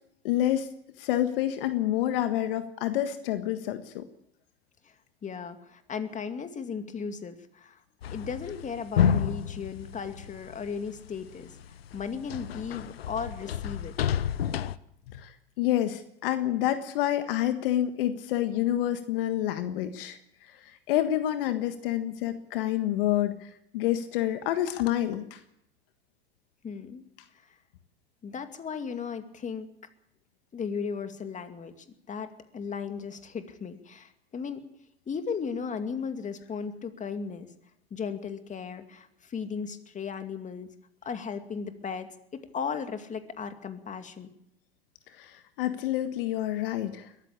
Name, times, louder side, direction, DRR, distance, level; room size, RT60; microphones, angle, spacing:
voice 1, 0.2-0.7 1.0-4.1 15.1-20.2 20.6-25.4 45.2-47.1, left 12 dB, 65° left, 9 dB, 1.6 m, -28 dB
voice 2, 5.2-7.8 8.1-11.5 11.9-13.9 26.6-27.0 27.3-27.5 28.2-29.7 30.5-34.7 35.1-37.5 37.9-40.7 41.0-44.3, left 6 dB, 25° left, 8 dB, 2.4 m, -36 dB
sound 1, 8.0-11.0 11.4-14.8, left 8 dB, 80° left, 0.9 m, -30 dB
22.0 x 14.5 x 8.5 m, 0.75 s
hypercardioid pair, 90°, 30 cm